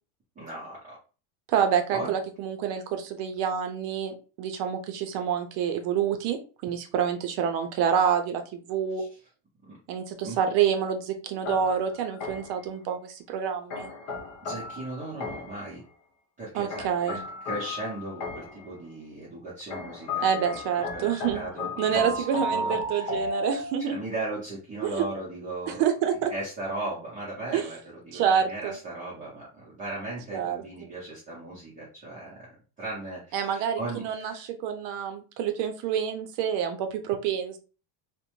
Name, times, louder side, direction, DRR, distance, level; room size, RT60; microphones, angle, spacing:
voice 1, 0.4-1.0 1.9-2.1 8.9-9.1 9.7-9.8 10.2-10.4 14.4-15.8 16.4-20.6 20.9-25.8 26.3-28.2 28.5-32.5 32.8-34.5, right 2 dB, 15° right, -7 dB, 0.6 m, -37 dB
voice 2, 1.5-9.0 9.9-13.9 16.5-17.2 20.2-21.4 21.8-24.0 24.8-25.1 25.7-26.3 27.5-27.6 28.1-28.7 30.3-30.9 33.3-37.6, right 8 dB, 60° right, 6 dB, 0.6 m, -27 dB
sound 1, 11.5-12.7 13.7-15.7 16.7-18.7 19.7-24.0, left 2 dB, 55° left, 0.8 m, -34 dB
2.5 x 2.1 x 2.9 m, 0.35 s
cardioid pair, 165°, 47 cm